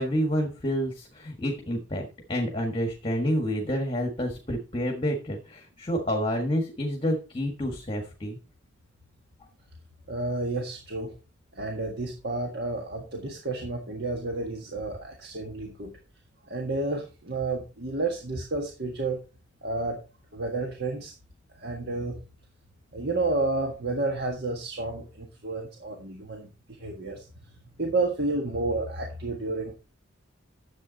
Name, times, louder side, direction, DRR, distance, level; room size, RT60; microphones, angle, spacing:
voice 1, 0.0-8.4, equal, 25° left, 3 dB, 1.6 m, -29 dB
voice 2, 10.1-11.1 11.5-15.9 16.5-19.2 19.6-20.0 20.3-21.1 21.6-22.2 22.9-27.3 27.8-29.8, right 2 dB, 55° right, 2 dB, 1.5 m, -31 dB
11.0 x 7.7 x 4.0 m, 0.33 s
head